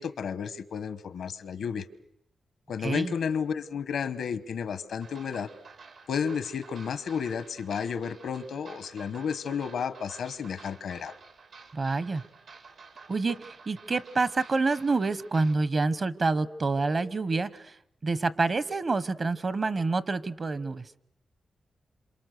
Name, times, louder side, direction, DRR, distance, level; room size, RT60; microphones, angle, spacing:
voice 1, 0.0-1.9 2.7-5.5 6.1-11.1, left 7 dB, 90° left, 13 dB, 1.1 m, -32 dB
voice 2, 2.8-3.1 11.7-12.2 13.1-17.8 18.0-20.9, right 3 dB, 45° right, 16 dB, 0.9 m, -27 dB
sound 1, 5.0-15.5, right 4 dB, 80° right, 2.4 m, -51 dB
27.5 x 27.0 x 6.6 m, 0.75 s
cardioid pair, 90°, 0 cm